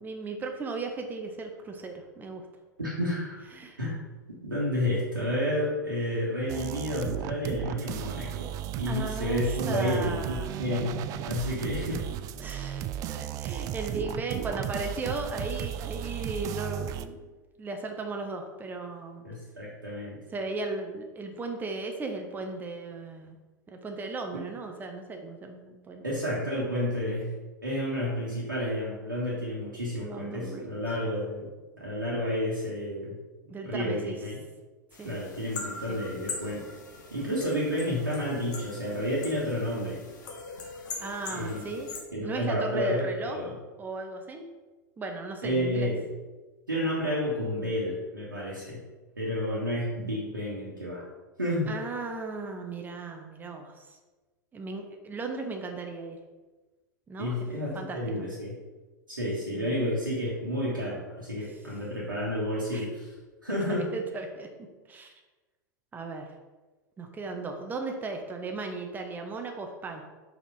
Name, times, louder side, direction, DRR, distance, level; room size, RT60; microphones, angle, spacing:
voice 1, 0.0-2.4 3.5-3.8 8.9-10.6 12.4-17.2 17.6-19.2 20.3-23.4 23.7-26.2 30.0-30.7 33.5-34.2 35.0-35.2 35.9-36.1 41.0-41.9 42.2-43.4 43.8-44.5 45.0-45.9 51.7-53.9 54.5-56.2 57.1-57.3 57.7-58.0 59.5-59.8 62.7-62.9 63.7-64.5 64.9-65.1 65.9-66.3 67.0-70.0, right 3 dB, 15° right, 3 dB, 0.8 m, -36 dB
voice 2, 2.8-3.4 3.8-4.0 4.3-8.5 8.8-12.0 19.2-20.2 24.3-24.4 26.0-27.3 27.6-31.5 31.8-33.2 33.6-34.4 35.0-36.7 37.1-40.0 41.3-41.6 42.1-43.5 45.4-46.0 46.7-48.8 49.2-51.0 51.4-51.7 57.2-58.6 59.1-63.1 63.4-63.8, left 1 dB, 85° right, -6 dB, 1.4 m, -30 dB
sound 1, 6.5-17.1, right 11 dB, 35° right, 0.3 m, -35 dB
sound 2, 34.9-42.0, left 4 dB, 65° left, 1.2 m, -41 dB
5.3 x 4.3 x 4.7 m, 1.2 s
figure-of-eight pair, 90°, 10 cm